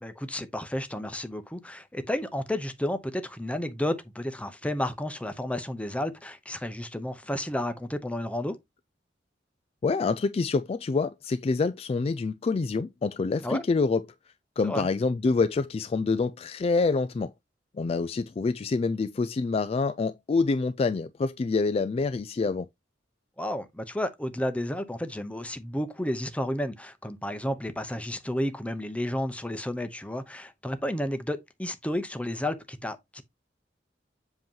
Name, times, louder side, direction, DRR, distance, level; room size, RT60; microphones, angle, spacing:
voice 1, 0.0-8.6 13.4-13.6 14.6-14.9 23.4-33.2, left 1 dB, 5° left, 0.8 m, -32 dB
voice 2, 9.8-14.0 14.6-17.3 17.7-22.7, left 4 dB, 35° left, 0.3 m, -26 dB
7.7 x 2.9 x 5.4 m
head